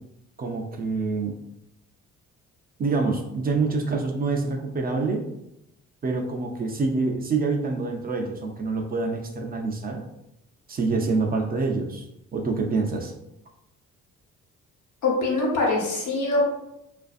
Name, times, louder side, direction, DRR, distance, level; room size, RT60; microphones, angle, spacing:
voice 1, 0.4-1.3 2.8-5.2 6.0-10.0 10.7-12.1 12.3-13.1, right 3 dB, 30° right, 3 dB, 0.4 m, -26 dB
voice 2, 15.0-16.4, left 2 dB, 80° left, -2 dB, 0.9 m, -23 dB
2.5 x 2.4 x 2.3 m, 0.84 s
cardioid pair, 90°, 30 cm